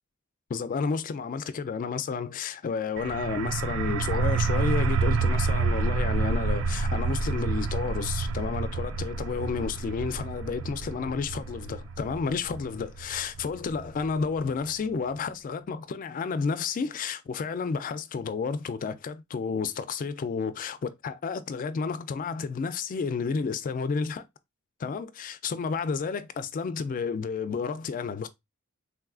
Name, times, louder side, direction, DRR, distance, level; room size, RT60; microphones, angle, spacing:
voice 1, 0.5-24.2 24.8-28.3, left 5 dB, 40° left, 0.3 m, -31 dB
sound 1, 3.0-14.4, right 4 dB, 65° right, 0.3 m, -28 dB
3.6 x 2.4 x 2.3 m
head